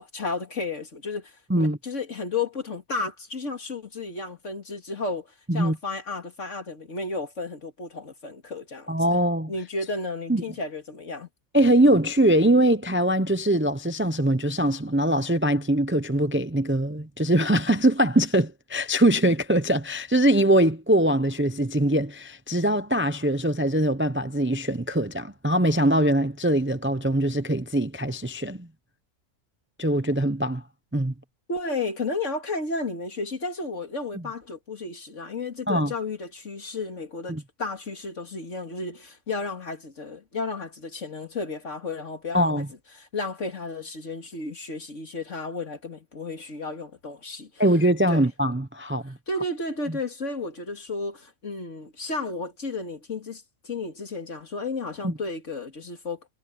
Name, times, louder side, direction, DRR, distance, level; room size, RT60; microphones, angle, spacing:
voice 1, 0.0-5.3 5.5-8.9 9.5-11.3 31.5-42.6 42.9-47.6 48.1-48.2 49.3-56.2, left 3 dB, 60° left, 2.9 m, -33 dB
voice 2, 8.9-9.5 10.3-10.4 11.5-28.7 29.8-30.6 30.9-31.1 35.7-35.9 37.3-37.4 42.3-42.7 47.6-49.2 55.0-55.1, right 1 dB, 10° right, 0.6 m, -22 dB
omnidirectional pair, 1.4 m